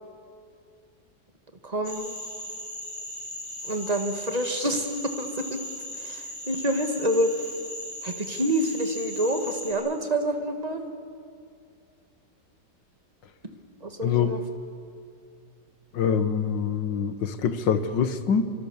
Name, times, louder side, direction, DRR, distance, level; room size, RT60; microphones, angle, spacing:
voice 1, 1.6-2.2 3.6-5.6 5.9-7.3 8.0-10.9 13.8-14.4, right 1 dB, 20° right, 6 dB, 2.0 m, -27 dB
sound 1, 1.8-9.7, left 1 dB, 20° left, 6.0 m, -38 dB
voice 2, 14.0-14.4 15.9-18.4, left 7 dB, 90° left, 11 dB, 1.9 m, -25 dB
26.5 x 24.5 x 7.2 m, 2.4 s
omnidirectional pair, 1.9 m